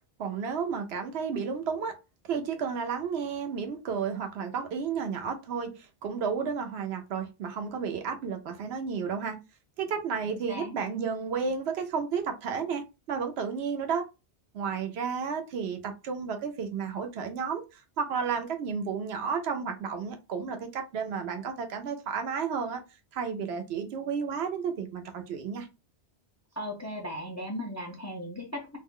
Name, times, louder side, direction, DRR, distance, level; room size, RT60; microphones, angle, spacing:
voice 1, 0.2-1.9 2.2-9.4 9.8-14.1 14.5-22.8 23.1-25.7, right 6 dB, 75° right, 0.9 m, -32 dB
voice 2, 10.3-10.7 26.6-28.8, left 1 dB, 25° left, 0.4 m, -37 dB
2.4 x 2.1 x 3.6 m
omnidirectional pair, 1.1 m